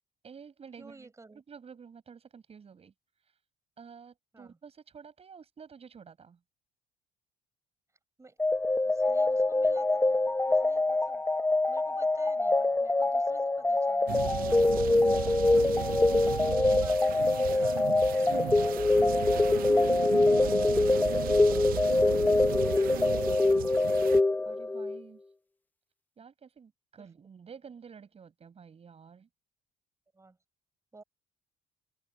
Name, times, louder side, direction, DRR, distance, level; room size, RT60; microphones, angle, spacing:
voice 1, 0.2-2.9 3.8-6.4 14.5-14.8 22.5-22.7 24.4-25.2 26.2-29.3, right 6 dB, 35° right, 7.3 m, -51 dB
voice 2, 0.8-1.4 4.3-4.6 8.2-8.4 8.8-11.2 11.7-14.3 14.8-16.1 16.6-18.8 19.2-19.9 20.3-22.1 22.6-24.1 27.0-27.1 30.1-30.4 30.9-31.0, right 3 dB, 15° right, 5.4 m, -53 dB
sound 1, 8.4-25.0, left 2 dB, 10° left, 0.7 m, -25 dB
sound 2, 14.1-24.2, right 14 dB, 60° right, 0.5 m, -36 dB
open air
cardioid pair, 110°, 17 cm